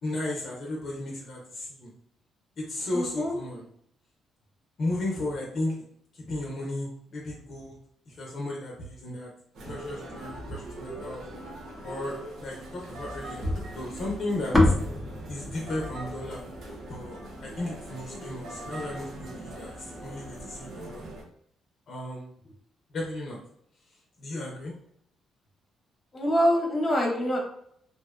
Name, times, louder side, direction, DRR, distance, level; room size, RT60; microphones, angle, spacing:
voice 1, 0.0-1.9 2.6-3.7 4.8-5.8 6.1-7.8 8.1-9.3 9.7-11.2 11.8-13.4 13.7-14.7 15.3-16.5 16.8-21.0 21.9-22.5 22.9-23.4 24.2-24.7, left 1 dB, 60° left, -3 dB, 0.6 m, -35 dB
voice 2, 2.9-3.3 26.1-27.4, equal, 25° left, -1 dB, 1.0 m, -25 dB
sound 1, 9.5-21.2, right 1 dB, 70° right, 0.6 m, -41 dB
sound 2, 13.4-17.7, left 1 dB, ahead, 0.6 m, -27 dB
2.6 x 2.1 x 2.3 m, 0.69 s
cardioid pair, 90°, 0 cm